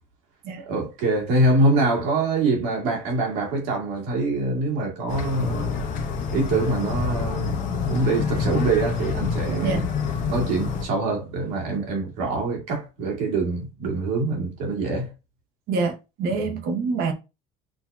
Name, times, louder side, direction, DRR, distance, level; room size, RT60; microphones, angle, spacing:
voice 1, 0.6-5.9 6.3-9.9 10.3-15.1 16.4-16.6, right 2 dB, 85° right, 2.2 m, -24 dB
sound 1, 5.1-10.9, left 5 dB, 50° left, 1.0 m, -27 dB
voice 2, 15.7-17.1, right 4 dB, 65° right, 1.1 m, -26 dB
6.3 x 2.8 x 2.4 m
cardioid pair, 130°, 17 cm